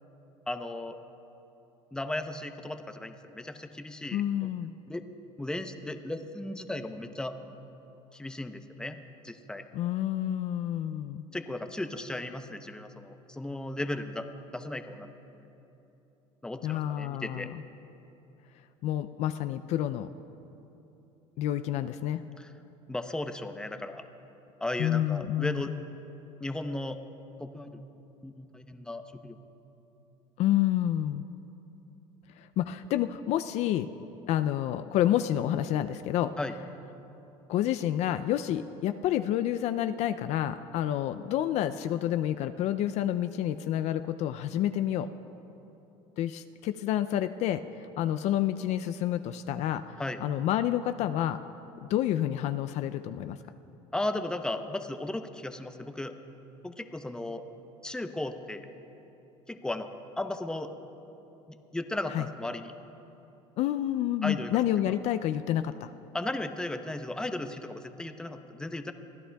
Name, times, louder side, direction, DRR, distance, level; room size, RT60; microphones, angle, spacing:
voice 1, 0.5-1.0 1.9-4.5 4.9-5.0 5.4-7.3 8.1-9.0 9.2-9.6 11.3-14.3 14.5-15.1 15.3-15.5 16.4-17.5 22.4-22.5 22.9-24.0 24.6-25.7 26.4-27.0 27.4-27.8 28.2-29.4 36.4-36.5 50.0-50.2 53.9-56.2 56.6-57.4 57.8-58.7 59.5-59.9 60.2-60.7 61.7-62.7 64.2-64.5 66.1-68.9, left 1 dB, 5° left, 8 dB, 0.7 m, -35 dB
voice 2, 4.1-4.7 9.7-11.2 16.6-17.6 18.8-20.1 21.4-22.2 24.8-25.8 30.4-31.3 32.4-33.9 34.3-36.3 37.5-45.1 46.2-51.4 51.8-53.4 62.1-62.2 63.6-65.9, left 12 dB, 55° left, 10 dB, 0.4 m, -29 dB
23.5 x 15.5 x 2.3 m, 3.0 s
supercardioid pair, 110°, 13 cm